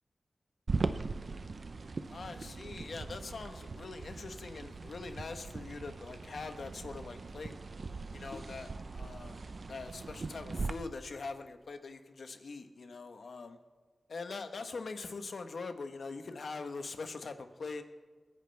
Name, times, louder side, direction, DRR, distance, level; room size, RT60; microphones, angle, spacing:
sound 1, 0.7-10.7, right 3 dB, 60° right, 0.7 m, -40 dB
voice 1, 2.1-7.6 8.1-9.4 9.7-13.6 14.1-17.8, left 4 dB, 80° left, 7 dB, 1.2 m, -43 dB
28.0 x 11.0 x 3.4 m, 1.5 s
wide cardioid pair, 105°, 0 cm